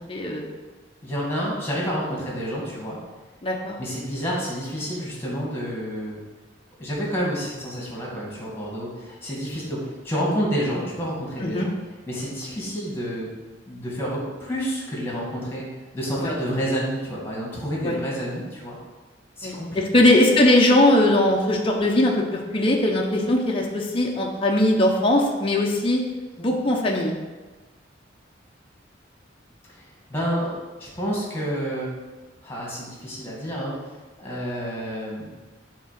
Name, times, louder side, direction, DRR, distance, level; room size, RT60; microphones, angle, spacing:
voice 1, 0.1-0.5 3.4-3.8 11.4-11.7 16.2-16.3 17.8-18.0 19.4-26.0 26.4-27.2, left 1 dB, 30° left, -1 dB, 0.7 m, -20 dB
voice 2, 1.0-3.0 3.8-6.2 6.8-11.7 12.1-13.3 13.7-15.7 15.9-18.8 19.4-20.0 29.7-29.8 30.1-31.9 32.4-33.7 34.2-35.3, equal, 15° left, -4 dB, 2.1 m, -29 dB
7.1 x 3.7 x 5.8 m, 1.3 s
head